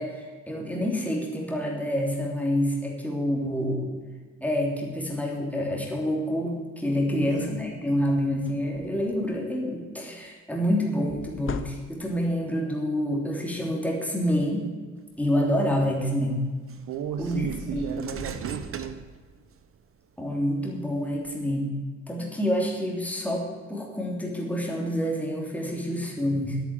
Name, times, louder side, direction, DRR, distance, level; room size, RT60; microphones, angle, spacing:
voice 1, 0.0-3.9 4.4-14.7 15.2-16.4 17.2-18.1 20.2-21.7 22.1-26.6, equal, 5° left, -1 dB, 3.2 m, -27 dB
voice 2, 7.0-7.3 16.9-19.0, right 8 dB, 85° right, 5 dB, 1.1 m, -34 dB
sound 1, 7.4-7.5 7.9-8.0 8.3-9.4 11.1-12.3, left 6 dB, 45° left, 0.9 m, -39 dB
sound 2, 15.7-15.8 16.7-19.8 20.3-21.3, right 6 dB, 45° right, 1.2 m, -39 dB
10.0 x 9.4 x 9.1 m, 1.5 s
cardioid pair, 90°, 30 cm